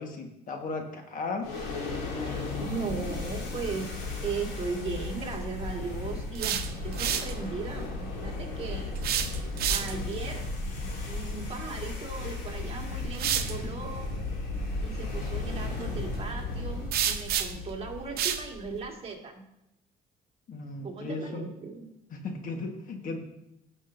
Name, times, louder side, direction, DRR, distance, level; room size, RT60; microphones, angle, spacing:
voice 1, 0.0-1.5 20.5-21.5 22.1-23.2, left 3 dB, 55° left, 4 dB, 1.4 m, -36 dB
sound 1, 1.4-18.8, left 3 dB, 75° left, 2.6 m, -35 dB
voice 2, 2.3-8.9 9.7-10.5 11.0-14.2 14.8-19.3 20.8-21.9, right 4 dB, 35° right, 0 dB, 1.9 m, -37 dB
sound 2, 6.2-7.4 9.0-10.1 12.2-12.3 13.1-13.6 16.9-17.7 18.2-18.5, right 10 dB, 65° right, 0.8 m, -29 dB
16.0 x 6.2 x 2.6 m, 0.86 s
cardioid pair, 110°, 17 cm